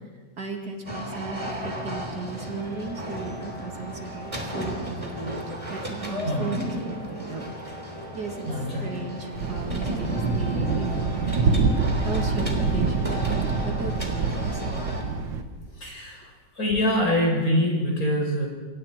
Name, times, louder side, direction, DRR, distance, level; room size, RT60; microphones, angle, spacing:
voice 1, 0.4-7.5 8.1-8.5 8.8-11.6 12.0-13.2 13.6-14.6, right 4 dB, 60° right, 2 dB, 3.0 m, -35 dB
sound 1, 0.9-15.0, equal, 15° right, 3.2 m, -34 dB
voice 2, 8.4-8.9 15.8-16.2 16.6-18.5, equal, 50° left, 1 dB, 5.1 m, -24 dB
Thunder, 9.3-15.4, right 4 dB, 85° right, 2.0 m, -26 dB
28.0 x 23.5 x 4.5 m, 1.4 s
omnidirectional pair, 2.0 m